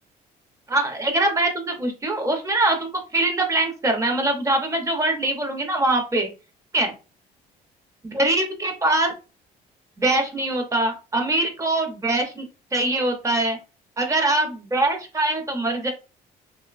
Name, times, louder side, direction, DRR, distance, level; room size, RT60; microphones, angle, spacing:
voice 1, 0.7-6.3 6.7-6.9 8.0-9.1 10.0-12.5 12.7-13.6 14.0-15.9, right 2 dB, 20° right, 4 dB, 0.7 m, -23 dB
2.6 x 2.2 x 2.4 m, 0.30 s
cardioid pair, 110°, 17 cm